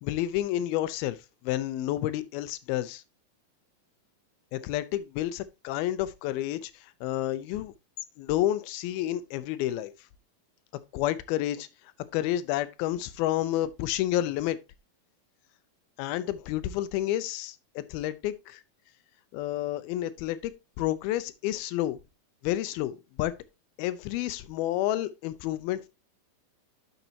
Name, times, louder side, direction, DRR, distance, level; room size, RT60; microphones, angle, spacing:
voice 1, 0.0-1.2 1.4-3.0 4.5-7.7 8.2-9.9 10.9-11.7 12.1-14.6 16.0-18.6 19.3-20.5 20.8-22.0 22.4-23.3 23.8-25.9, left 13 dB, 85° left, 2.5 m, -30 dB
10.5 x 6.8 x 2.8 m
omnidirectional pair, 4.3 m